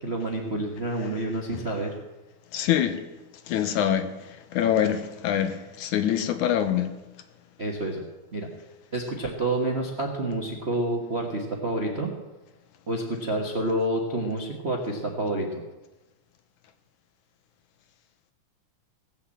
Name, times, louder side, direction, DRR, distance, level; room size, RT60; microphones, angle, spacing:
voice 1, 0.0-1.9 7.6-8.0 8.3-8.5 8.9-12.1 12.9-15.6, right 1 dB, 40° right, 0 dB, 0.9 m, -28 dB
voice 2, 2.5-3.0 3.5-6.9, left 10 dB, 75° left, 9 dB, 2.4 m, -25 dB
18.0 x 7.2 x 7.6 m, 1.1 s
omnidirectional pair, 3.6 m